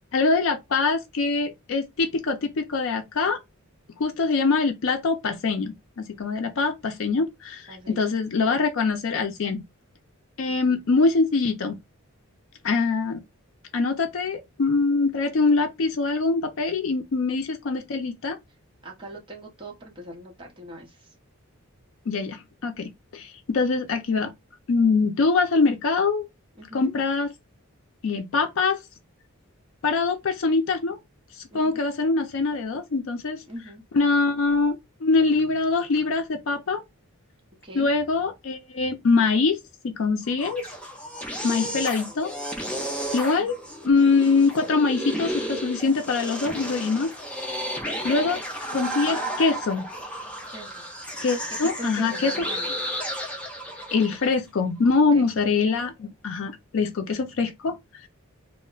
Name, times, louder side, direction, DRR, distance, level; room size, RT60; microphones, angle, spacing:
voice 1, 0.1-3.4 4.0-9.6 10.4-11.8 12.6-13.2 13.7-18.4 22.1-24.3 24.7-26.3 26.7-27.3 28.0-28.8 29.8-31.0 31.5-33.4 33.9-36.8 37.7-39.6 39.8-40.7 41.4-42.3 43.1-43.6 43.8-47.1 48.0-48.4 48.7-49.9 51.2-52.3 53.9-57.8, left 4 dB, 65° left, 0.4 m, -23 dB
voice 2, 7.7-8.1 10.5-10.8 18.8-21.1 26.6-26.9 31.5-31.8 33.5-33.8 37.6-37.9 41.5-41.8 43.4-43.5 50.5-50.9 51.5-52.8 55.1-55.3, equal, 25° right, 0.8 m, -41 dB
sound 1, 40.3-54.4, equal, 5° left, 0.5 m, -33 dB
2.1 x 2.1 x 3.7 m
head